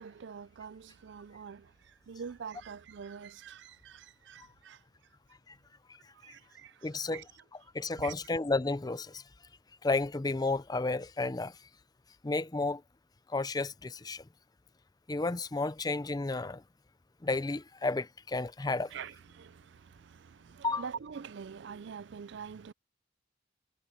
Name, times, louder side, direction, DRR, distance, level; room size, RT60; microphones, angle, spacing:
voice 1, 0.0-4.8 6.1-7.2 7.9-8.1 18.9-22.7, right 6 dB, 60° right, 0.4 m, -45 dB
voice 2, 6.8-7.2 7.7-9.2 9.8-11.5 12.2-12.8 13.3-14.2 15.1-16.6 17.2-18.9 20.6-20.9, left 3 dB, 20° left, 0.5 m, -32 dB
head